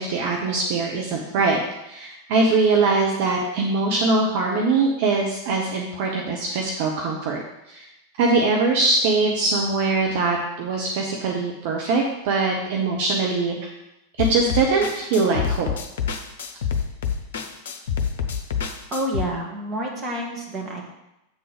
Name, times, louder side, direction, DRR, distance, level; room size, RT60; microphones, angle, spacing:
voice 1, 0.0-1.6 1.9-7.4 7.7-7.9 8.2-13.6 14.2-15.7, right 3 dB, 50° right, 0 dB, 1.0 m, -22 dB
sound 1, 14.2-19.2, left 7 dB, 60° left, 0.7 m, -27 dB
voice 2, 18.9-20.8, right 1 dB, 25° right, -1 dB, 2.1 m, -28 dB
8.0 x 3.9 x 6.7 m, 0.91 s
figure-of-eight pair, 90°, 0 cm